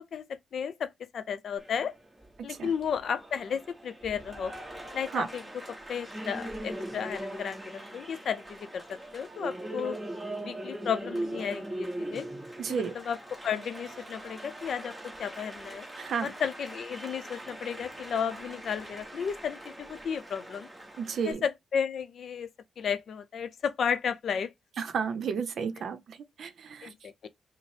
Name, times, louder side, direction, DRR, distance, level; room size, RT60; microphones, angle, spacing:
voice 1, 0.0-1.9 2.4-4.5 4.9-5.4 5.9-10.0 10.4-12.3 12.7-13.2 13.4-14.9 15.2-15.9 16.2-20.7 21.3-22.5 22.8-24.5 26.8-27.3, left 7 dB, 65° left, 0.5 m, -33 dB
Applause, 1.6-21.3, right 1 dB, 10° right, 1.1 m, -41 dB
voice 2, 12.6-12.9 16.0-16.3 21.0-21.4 24.8-26.9, right 6 dB, 65° right, 0.6 m, -32 dB
5.2 x 2.0 x 3.2 m
wide cardioid pair, 140°, 0 cm